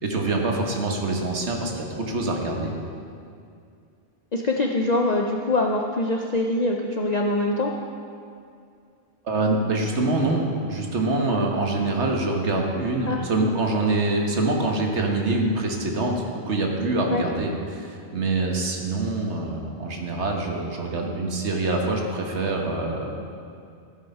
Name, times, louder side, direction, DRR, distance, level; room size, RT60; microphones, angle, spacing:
voice 1, 0.0-2.7 9.2-23.2, right 2 dB, 80° right, 1 dB, 1.7 m, -25 dB
voice 2, 4.3-7.7 13.1-13.2 17.1-17.2, left 2 dB, 45° left, 1 dB, 0.7 m, -23 dB
14.0 x 7.8 x 5.5 m, 2.4 s
omnidirectional pair, 1.1 m